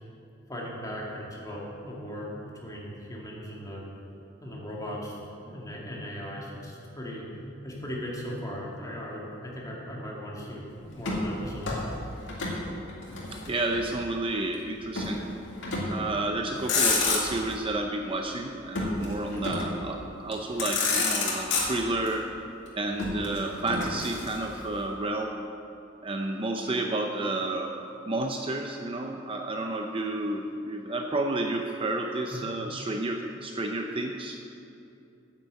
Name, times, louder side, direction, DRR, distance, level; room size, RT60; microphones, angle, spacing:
voice 1, 0.5-3.8 4.4-7.3 7.6-11.8 32.3-32.5, equal, 20° left, -4 dB, 2.3 m, -38 dB
Motor vehicle (road), 11.0-12.6 12.9-14.0 15.0-15.2 15.6-16.1 16.5-17.6 18.7-19.8 20.3-20.4 20.6-22.1 23.0-24.6, left 3 dB, 70° left, 2.4 m, -29 dB
voice 2, 13.3-15.2 15.9-22.3 22.8-25.3 26.0-27.8 28.1-34.4, right 2 dB, 30° right, 3 dB, 0.6 m, -31 dB
9.5 x 8.3 x 7.8 m, 2.8 s
head